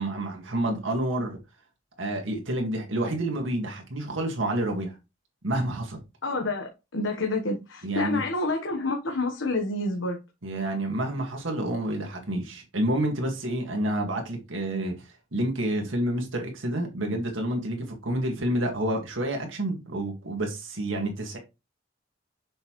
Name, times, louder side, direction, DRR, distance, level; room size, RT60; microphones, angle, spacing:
voice 1, 0.0-1.4 2.0-5.0 5.4-6.0 7.8-8.2 10.4-21.4, right 1 dB, 90° right, 1.9 m, -29 dB
voice 2, 6.2-10.2, left 2 dB, 85° left, 1.2 m, -28 dB
6.6 x 5.3 x 3.1 m
head